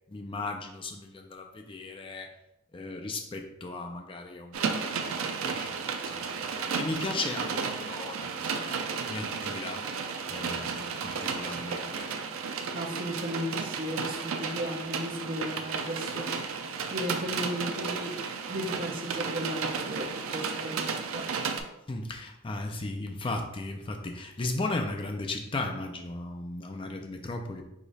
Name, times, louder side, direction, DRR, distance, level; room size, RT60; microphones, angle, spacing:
voice 1, 0.1-2.3 2.7-5.8 6.1-8.4 8.6-9.8 10.3-12.1 21.9-27.6, left 2 dB, 25° left, 4 dB, 0.4 m, -36 dB
sound 1, 4.5-21.6, right 5 dB, 80° right, 0.5 m, -33 dB
voice 2, 12.7-18.1 18.5-21.3, equal, 40° right, 1 dB, 0.7 m, -35 dB
4.9 x 2.4 x 4.0 m, 0.89 s
head